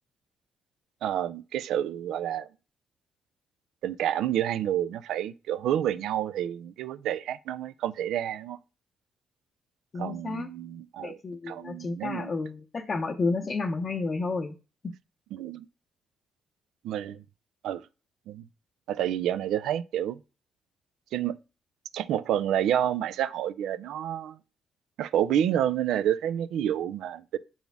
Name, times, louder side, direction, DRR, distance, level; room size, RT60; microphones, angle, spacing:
voice 1, 1.0-2.5 3.8-8.6 10.0-11.2 11.5-12.3 15.3-15.7 16.8-17.2 17.6-17.8 18.3-18.4 18.9-20.2 21.1-21.4 21.9-24.4 25.0-27.4, right 10 dB, 85° right, 0.3 m, -29 dB
voice 2, 9.9-10.5 11.0-14.6, left 3 dB, 40° left, 0.6 m, -31 dB
7.0 x 4.1 x 3.4 m
cardioid pair, 75°, 0 cm